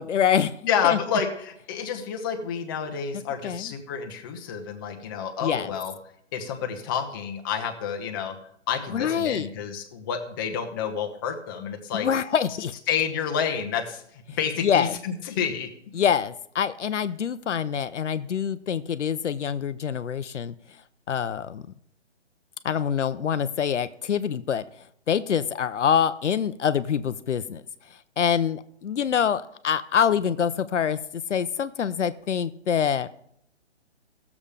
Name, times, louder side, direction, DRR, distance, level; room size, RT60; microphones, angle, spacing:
voice 1, 0.0-0.5 0.8-1.0 3.4-3.7 5.4-5.7 8.9-9.5 11.9-12.7 14.6-15.0 15.9-20.5 21.1-21.6 22.6-24.6 25.1-27.6 28.2-33.1, left 8 dB, 80° left, 13 dB, 0.7 m, -25 dB
voice 2, 0.6-5.9 6.3-8.3 8.7-12.1 12.9-15.7, left 7 dB, 20° left, 4 dB, 0.8 m, -29 dB
16.5 x 7.1 x 3.4 m, 0.70 s
hypercardioid pair, 150°, 36 cm